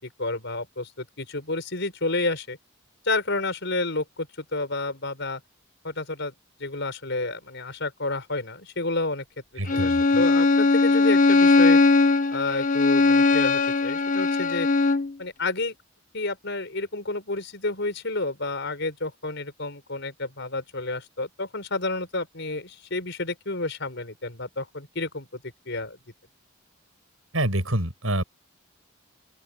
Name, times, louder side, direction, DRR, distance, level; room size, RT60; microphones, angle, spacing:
voice 1, 0.0-2.6 3.0-5.4 5.8-6.3 6.6-9.2 9.7-11.8 12.3-14.7 15.2-15.8 16.1-26.0, left 2 dB, 60° left, 5.8 m, -30 dB
voice 2, 9.6-10.0 27.3-28.2, right 1 dB, 85° right, 7.7 m, -26 dB
Bowed string instrument, 9.7-15.1, left 3 dB, 40° left, 1.5 m, -19 dB
open air
head